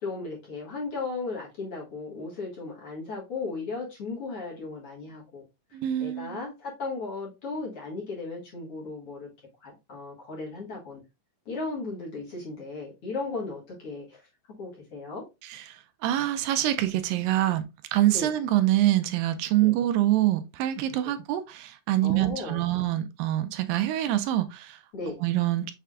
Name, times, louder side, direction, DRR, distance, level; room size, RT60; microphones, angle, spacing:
voice 1, 0.0-5.4 5.7-9.3 9.6-11.0 11.5-14.2 14.6-15.2 18.1-18.3 19.6-19.7 21.0-21.1 22.0-22.7 24.9-25.2, left 3 dB, 50° left, 2.1 m, -36 dB
voice 2, 5.7-6.4 15.4-15.6 16.0-17.6 17.9-24.8 25.2-25.7, right 14 dB, 85° right, 2.2 m, -25 dB
6.5 x 3.4 x 2.3 m
omnidirectional pair, 4.0 m